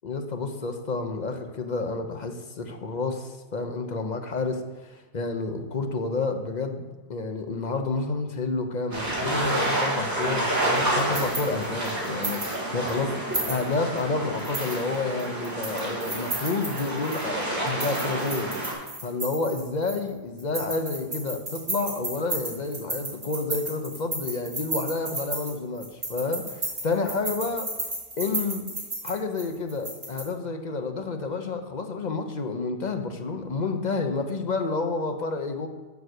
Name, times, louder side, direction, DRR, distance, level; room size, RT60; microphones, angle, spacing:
voice 1, 0.0-18.5 19.0-27.7 28.2-28.7 29.0-35.7, left 3 dB, 45° left, 5 dB, 0.8 m, -30 dB
sound 1, 8.9-18.7, right 1 dB, 15° right, 2.9 m, -29 dB
sound 2, 10.8-12.6 12.9-13.0 13.3-14.0 14.4-17.3 17.7-20.1 20.4-30.2, right 2 dB, 40° right, 2.1 m, -33 dB
7.1 x 6.3 x 6.4 m, 1.3 s
omnidirectional pair, 1.1 m